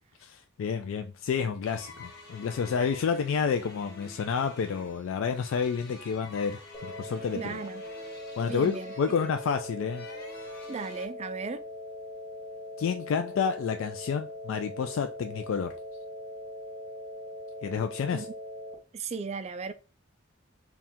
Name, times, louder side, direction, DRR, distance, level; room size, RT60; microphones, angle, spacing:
voice 1, 0.2-7.6 8.4-10.1 12.8-15.8 17.6-18.3, left 6 dB, 75° left, 0.3 m, -30 dB
sound 1, 1.6-11.1, left 2 dB, 50° left, 1.2 m, -48 dB
sound 2, 6.7-18.7, left 1 dB, 25° left, 1.0 m, -41 dB
voice 2, 7.3-7.8 8.5-8.9 10.7-11.6 18.1-18.3 18.9-19.7, right 5 dB, 30° right, 0.3 m, -36 dB
4.2 x 2.3 x 3.6 m
head